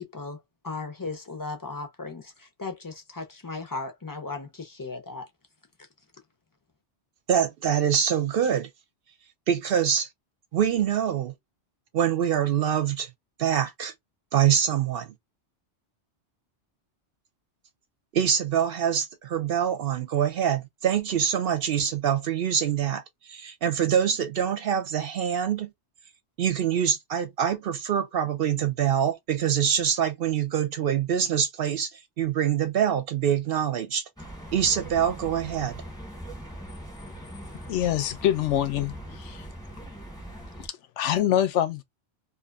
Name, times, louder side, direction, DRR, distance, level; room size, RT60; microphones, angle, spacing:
voice 1, 0.0-5.3, left 3 dB, 25° left, 0.5 m, -36 dB
voice 2, 7.3-8.7 9.5-10.1 10.5-11.3 11.9-13.1 13.4-13.9 14.3-15.1 18.1-25.7 26.4-34.0 34.5-35.8, right 8 dB, 65° right, 0.7 m, -25 dB
sound 1, 34.2-40.7, right 1 dB, 5° left, 0.9 m, -41 dB
voice 3, 37.7-39.5 40.6-41.8, left 11 dB, 85° left, 0.9 m, -25 dB
2.5 x 2.4 x 2.2 m
omnidirectional pair, 1.2 m